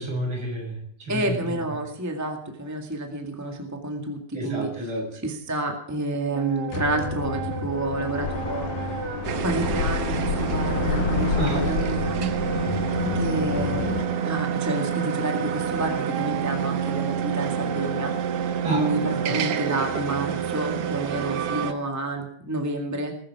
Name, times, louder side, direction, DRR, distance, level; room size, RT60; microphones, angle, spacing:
voice 1, 0.0-1.4 4.3-5.2 11.3-11.7 18.6-18.9 19.2-19.4, right 1 dB, 35° right, 0 dB, 7.4 m, -30 dB
voice 2, 1.1-4.7 5.2-9.1 9.4-12.3 13.0-18.2 18.7-23.1, right 2 dB, 10° right, 3 dB, 1.0 m, -29 dB
Wind instrument woodwind instrument, 6.3-21.8, right 7 dB, 80° right, 2.9 m, -33 dB
sound 1, 6.7-14.1, left 9 dB, 70° left, 1.8 m, -29 dB
sound 2, 9.2-21.7, right 8 dB, 65° right, 1.6 m, -29 dB
21.0 x 12.5 x 4.8 m, 0.66 s
omnidirectional pair, 3.9 m